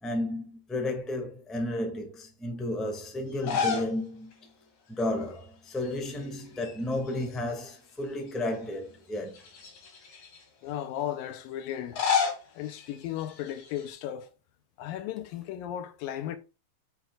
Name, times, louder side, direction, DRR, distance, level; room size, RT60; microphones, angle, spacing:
voice 1, 0.0-4.5 4.9-9.3, left 1 dB, ahead, 1.3 m, -33 dB
sound 1, 3.3-4.0 4.3-4.4 5.8-6.2 6.5-7.7 8.3-8.4 9.3-10.4 11.7-13.9, left 6 dB, 55° left, 3.6 m, -32 dB
voice 2, 10.6-12.1 12.6-14.3 14.8-16.4, left 11 dB, 85° left, 2.6 m, -35 dB
9.4 x 5.8 x 2.5 m
omnidirectional pair, 4.0 m